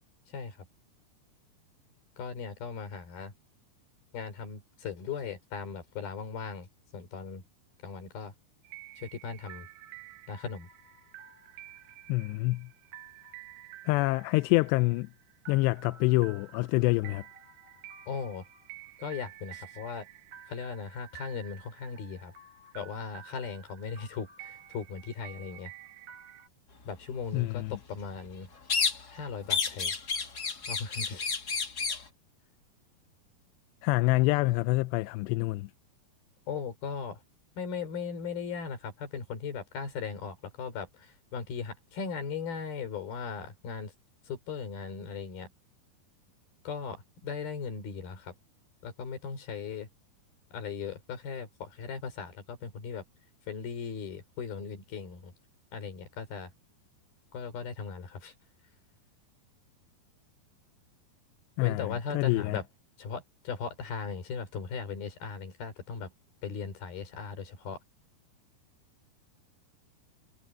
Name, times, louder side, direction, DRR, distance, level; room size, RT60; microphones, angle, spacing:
voice 1, 2.2-3.3 4.1-6.7 6.9-7.4 7.8-8.3 9.0-9.7 10.3-10.7 18.1-18.4 19.0-20.1 20.5-22.3 22.8-25.7 26.9-28.5 29.1-29.9 30.7-31.3 36.5-37.2 37.6-43.9 44.3-45.5 46.7-48.3 48.8-49.9 50.5-53.0 53.5-55.3 55.7-56.5 57.3-58.3 61.6-62.6 63.0-66.1 66.4-67.8, left 6 dB, 60° left, 5.8 m, -38 dB
sound 1, 8.6-26.5, right 11 dB, 60° right, 6.3 m, -50 dB
voice 2, 12.1-12.7 13.9-15.1 15.5-17.2 27.3-27.8 33.8-35.7 61.6-62.6, left 21 dB, 90° left, 2.7 m, -26 dB
sound 2, 28.7-29.2 29.5-32.1, left 5 dB, 35° left, 1.8 m, -30 dB
omnidirectional pair, 4.8 m